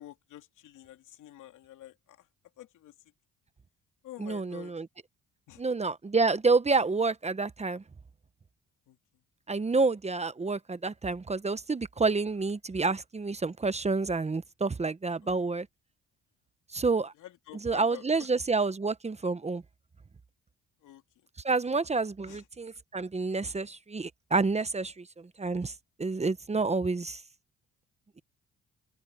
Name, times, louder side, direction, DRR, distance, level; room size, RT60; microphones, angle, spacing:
voice 1, 0.0-2.3 2.6-2.9 4.0-4.7 5.5-5.6 8.9-9.0 15.2-15.3 17.1-18.3 20.8-21.0 22.3-22.5, left 13 dB, 80° left, 3.0 m, -48 dB
voice 2, 4.2-4.9 5.6-7.8 9.5-15.7 16.7-17.1 17.6-19.6 21.4-25.0 25.4-25.7 26.0-27.2, right 3 dB, 20° right, 1.0 m, -28 dB
open air
cardioid pair, 90°, 30 cm